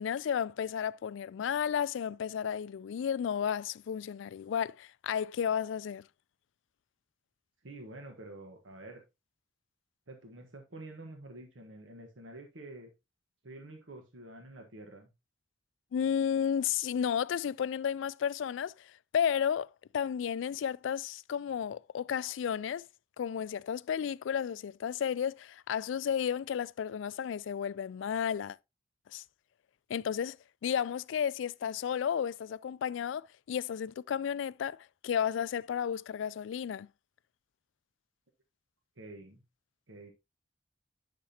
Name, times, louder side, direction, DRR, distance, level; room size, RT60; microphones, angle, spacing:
voice 1, 0.0-6.0 15.9-19.7 19.9-22.8 23.2-28.6 29.1-29.2 29.9-30.4 30.6-36.9, left 8 dB, 70° left, 0.3 m, -33 dB
voice 2, 7.6-9.0 10.1-12.9 13.4-15.1 39.0-39.4 39.9-40.1, right 2 dB, 80° right, 1.3 m, -48 dB
10.5 x 5.9 x 2.8 m
head